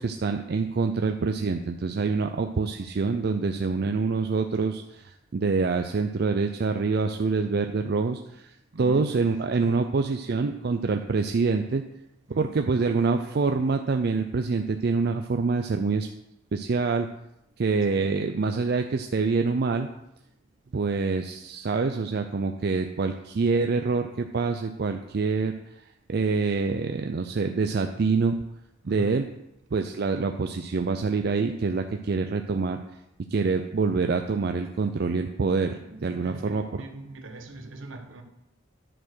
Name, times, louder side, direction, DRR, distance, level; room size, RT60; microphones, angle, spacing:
voice 1, 0.0-8.5 8.8-11.8 12.4-16.1 16.5-17.1 17.6-19.9 20.7-25.5 26.1-28.4 28.9-29.2 29.7-32.8 33.3-36.6, right 4 dB, 50° right, 0.4 m, -26 dB
voice 2, 8.7-9.1 9.6-9.8 12.3-12.5 17.9-18.1 28.8-29.1 35.8-38.2, right 2 dB, 75° right, 1.0 m, -41 dB
10.0 x 4.5 x 6.1 m
head